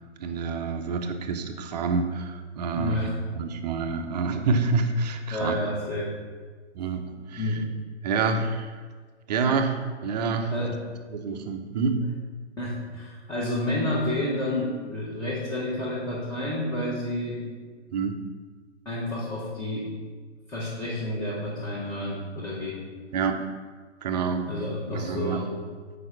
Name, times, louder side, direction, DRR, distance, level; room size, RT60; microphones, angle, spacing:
voice 1, 0.2-3.1 3.3-5.6 6.7-7.5 8.0-8.7 9.3-10.7 11.1-12.0 17.9-18.2 23.1-23.4 24.0-24.5 24.9-25.4, right 4 dB, 35° right, 5 dB, 0.7 m, -27 dB
voice 2, 2.7-3.1 5.3-6.1 7.4-7.7 10.5-10.7 12.6-17.4 18.8-19.9 20.5-22.8 24.5-25.5, left 1 dB, 10° left, -8 dB, 1.2 m, -30 dB
6.3 x 5.0 x 5.6 m, 1.5 s
figure-of-eight pair, 125°, 35 cm